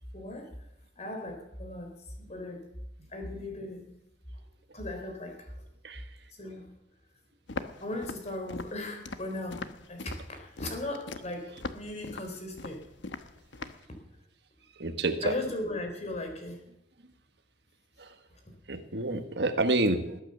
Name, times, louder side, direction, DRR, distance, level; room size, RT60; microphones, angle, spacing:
voice 1, 0.1-0.5 1.0-1.9 2.2-2.6 3.1-3.8 4.7-5.5 6.4-6.7 7.8-9.6 9.9-10.0 10.3-12.8 15.2-16.6 18.7-18.8, left 1 dB, 40° left, 3 dB, 4.1 m, -37 dB
Walk footsteps, 7.5-13.9, left 3 dB, 85° left, 1.1 m, -41 dB
voice 2, 14.8-15.4 18.0-18.1 18.7-20.2, right 2 dB, 65° right, 7 dB, 1.5 m, -28 dB
20.5 x 9.0 x 6.8 m, 0.85 s
head